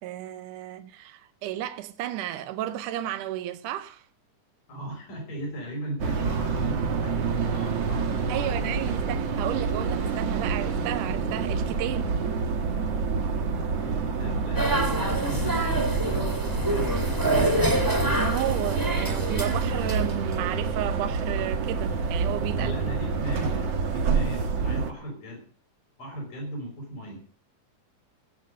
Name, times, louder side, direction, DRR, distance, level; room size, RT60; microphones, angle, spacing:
voice 1, 0.0-4.0 8.3-12.1 18.2-22.7 23.1-23.2, right 12 dB, 75° right, 2.3 m, -33 dB
voice 2, 4.7-7.1 7.5-9.0 13.8-17.1 22.6-25.5 26.0-27.2, equal, 80° left, 6.4 m, -37 dB
sound 1, 6.0-24.9, right 5 dB, 60° right, 2.1 m, -28 dB
sound 2, 14.5-20.3, right 1 dB, 10° right, 1.3 m, -27 dB
16.5 x 8.1 x 6.4 m
omnidirectional pair, 3.8 m